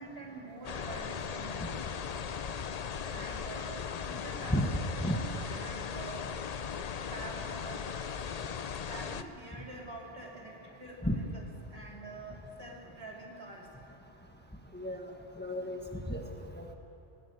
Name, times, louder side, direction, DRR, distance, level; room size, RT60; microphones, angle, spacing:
voice 1, 0.0-2.1 3.1-4.6 4.9-6.6 7.0-8.0 8.7-11.4 11.7-13.7, right 2 dB, 65° right, -1 dB, 3.0 m, -46 dB
sound 1, 0.6-9.2, left 7 dB, 45° left, 0.6 m, -38 dB
voice 2, 4.5-5.2 11.0-11.2 14.7-15.0 15.4-16.2 16.6-16.7, equal, 10° left, 2 dB, 1.3 m, -32 dB
19.0 x 16.0 x 8.5 m, 2.8 s
omnidirectional pair, 1.1 m